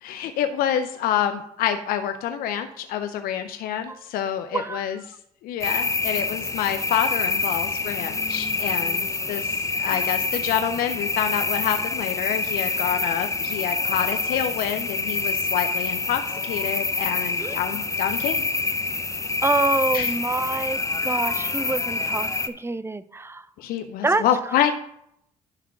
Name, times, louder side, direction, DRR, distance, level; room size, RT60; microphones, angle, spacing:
voice 1, 0.0-5.0 5.4-18.4 19.9-20.1 23.6-24.7, left 9 dB, 75° left, 8 dB, 0.6 m, -27 dB
voice 2, 4.5-5.0 9.9-10.1 17.4-17.6 19.4-23.5 24.0-24.2, right 2 dB, 15° right, 15 dB, 0.6 m, -26 dB
sound 1, 5.6-22.5, left 3 dB, 20° left, 0.8 m, -26 dB
11.0 x 3.6 x 6.0 m, 0.74 s
supercardioid pair, 55°, 15 cm